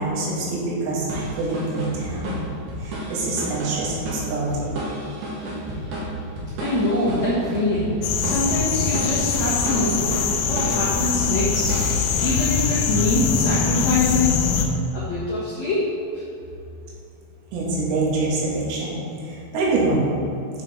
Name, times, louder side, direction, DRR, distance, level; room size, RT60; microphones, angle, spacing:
voice 1, 0.0-2.3 2.8-4.7 17.5-19.0 19.3-20.1, right 2 dB, 85° right, -5 dB, 4.5 m, -25 dB
sound 1, 1.1-13.0, right 1 dB, 65° right, 2.1 m, -31 dB
voice 2, 6.6-10.1 10.4-11.7 12.2-14.4 14.9-15.9 16.1-16.2, left 2 dB, 65° left, -10 dB, 1.7 m, -24 dB
sound 2, 8.0-14.7, left 6 dB, 85° left, 3.0 m, -23 dB
12.0 x 6.4 x 3.4 m, 2.7 s
omnidirectional pair, 5.9 m